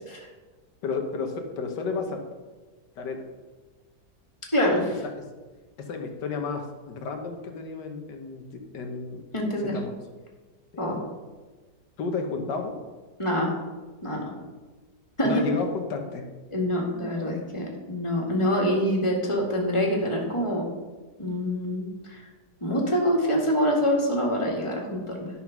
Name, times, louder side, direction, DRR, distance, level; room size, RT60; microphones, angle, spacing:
voice 1, 0.8-2.2 3.0-3.2 5.0-5.1 5.8-8.4 8.7-9.2 9.7-9.9 10.7-10.8 12.0-12.8 15.2-16.3, left 4 dB, 85° left, 4 dB, 1.8 m, -31 dB
voice 2, 4.5-5.0 9.3-9.7 10.8-11.0 13.2-13.5 14.0-14.2 15.2-15.3 16.5-20.6 21.2-22.2 22.6-25.3, equal, 15° left, -1 dB, 2.0 m, -25 dB
11.0 x 5.7 x 6.0 m, 1.3 s
omnidirectional pair, 1.8 m